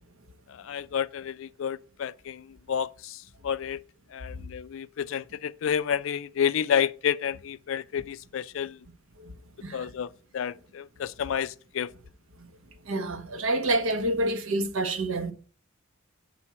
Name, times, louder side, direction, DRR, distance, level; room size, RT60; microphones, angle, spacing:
voice 1, 0.5-3.8 4.1-8.8 9.7-11.9, left 8 dB, 65° left, 0.3 m, -30 dB
voice 2, 12.9-15.3, right 2 dB, 75° right, 1.0 m, -28 dB
7.3 x 4.4 x 5.6 m
head